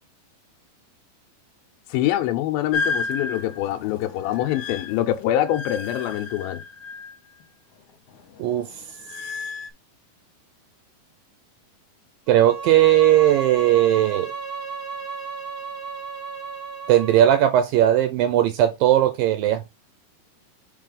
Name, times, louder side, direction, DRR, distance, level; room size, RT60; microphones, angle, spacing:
voice 1, 1.9-6.6, left 13 dB, 85° left, 2.5 m, -24 dB
sound 1, 2.7-7.4 7.8-9.7, left 4 dB, 55° left, 1.9 m, -33 dB
Bowed string instrument, 12.3-17.4, right 5 dB, 30° left, 0.3 m, -34 dB
voice 2, 12.3-14.3 16.9-19.6, right 12 dB, 80° right, 2.3 m, -18 dB
5.4 x 4.8 x 3.8 m
omnidirectional pair, 4.2 m